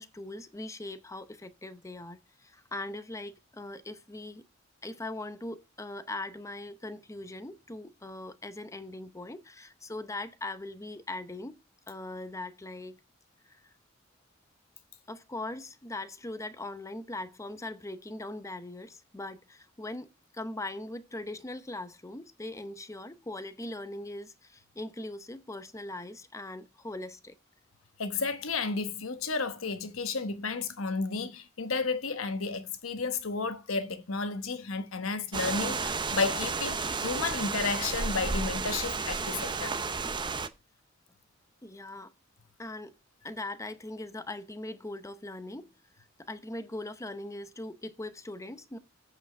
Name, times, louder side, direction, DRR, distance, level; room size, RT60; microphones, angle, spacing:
voice 1, 0.0-4.4 4.8-11.6 11.9-13.0 13.4-13.7 15.1-27.4 41.6-42.1 42.6-42.9 43.2-45.7 46.0-48.8, left 2 dB, 15° left, 0.7 m, -40 dB
voice 2, 28.0-39.8, left 4 dB, 85° left, 1.1 m, -32 dB
sound 1, 35.3-40.5, right 4 dB, 25° right, 0.6 m, -32 dB
8.1 x 4.9 x 5.8 m
head